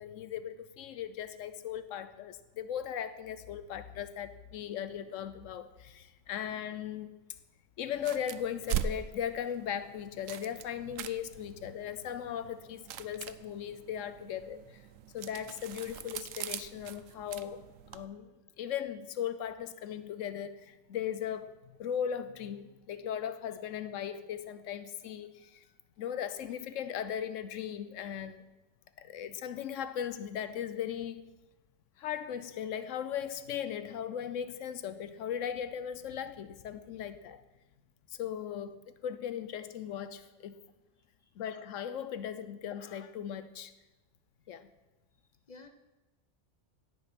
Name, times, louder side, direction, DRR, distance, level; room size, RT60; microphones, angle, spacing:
voice 1, 0.0-7.1 7.8-14.8 15.1-17.6 17.9-18.3 18.6-21.5 21.8-25.6 26.0-28.4 29.0-31.3 32.0-37.4 38.1-40.6 41.4-43.7 44.5-44.7, left 9 dB, 85° left, 1.0 m, -38 dB
sound 1, 7.9-18.1, right 9 dB, 90° right, 1.0 m, -42 dB
voice 2, 45.1-45.7, left 3 dB, 40° left, 0.9 m, -54 dB
17.0 x 6.1 x 5.9 m
omnidirectional pair, 1.3 m